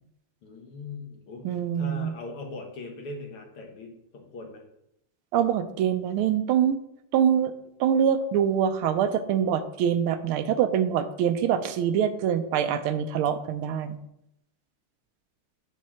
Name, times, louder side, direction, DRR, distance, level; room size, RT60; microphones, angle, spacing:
voice 1, 0.4-4.6, left 3 dB, 85° left, 0 dB, 2.2 m, -40 dB
voice 2, 1.4-2.1 5.3-6.8 7.1-7.5 7.8-14.0, right 8 dB, 85° right, 10 dB, 1.5 m, -24 dB
7.5 x 3.7 x 5.7 m, 0.79 s
omnidirectional pair, 2.4 m